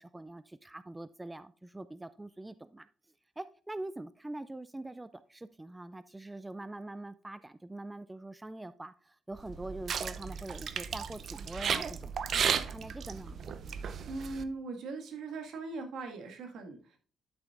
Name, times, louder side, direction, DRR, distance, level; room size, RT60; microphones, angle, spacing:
voice 1, 0.0-2.9 3.4-13.4, right 2 dB, 15° right, 0.4 m, -44 dB
sound 1, 9.4-14.4, right 7 dB, 60° right, 0.6 m, -34 dB
voice 2, 14.1-17.0, right 3 dB, 75° right, 1.9 m, -40 dB
11.5 x 6.2 x 2.5 m
cardioid pair, 90°, 0 cm